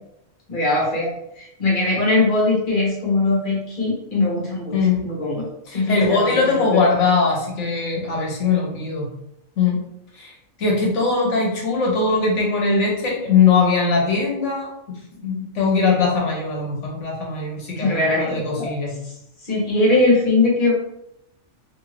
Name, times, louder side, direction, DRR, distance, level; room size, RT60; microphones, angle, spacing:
voice 1, 0.5-1.1 1.4-4.7 5.0-6.8 17.8-18.7 19.4-20.7, left 2 dB, 45° left, -4 dB, 1.2 m, -20 dB
voice 2, 5.7-9.1 9.6-9.8 10.2-10.3 10.6-14.7 15.2-18.9, left 4 dB, 70° left, -2 dB, 1.2 m, -20 dB
2.8 x 2.6 x 3.2 m, 0.80 s
omnidirectional pair, 1.3 m